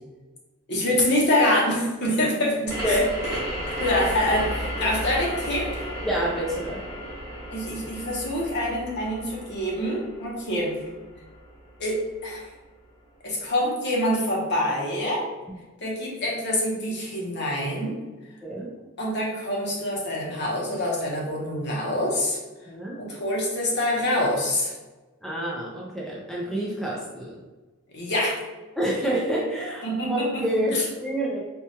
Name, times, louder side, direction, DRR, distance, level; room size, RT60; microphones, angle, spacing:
voice 1, 0.7-3.0 3.3-3.4 3.7-5.9 7.5-10.7 11.8-12.4 13.2-15.2 15.8-18.0 19.0-22.4 23.0-24.7 27.9-28.4 29.8-30.5 30.7-30.9, left 1 dB, 55° left, -3 dB, 0.9 m, -25 dB
sound 1, 2.7-12.0, equal, 15° right, 1.1 m, -34 dB
voice 2, 2.8-3.1 6.0-6.8 18.4-18.7 22.7-23.0 25.2-27.3 28.8-31.4, equal, ahead, -5 dB, 0.5 m, -28 dB
4.4 x 2.3 x 2.8 m, 1.2 s
head